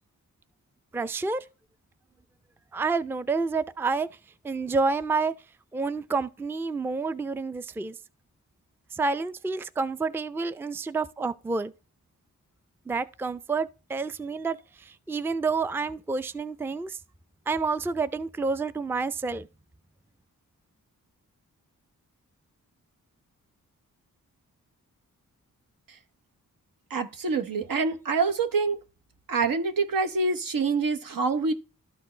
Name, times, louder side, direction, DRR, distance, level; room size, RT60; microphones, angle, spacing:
voice 1, 0.9-1.5 2.7-4.1 4.4-5.3 5.7-8.0 8.9-11.7 12.9-17.0 17.5-19.5, right 4 dB, 5° right, 0.4 m, -29 dB
voice 2, 26.9-28.8 29.3-31.5, right 4 dB, 75° right, 1.0 m, -26 dB
12.5 x 4.2 x 3.2 m
cardioid pair, 60°, 34 cm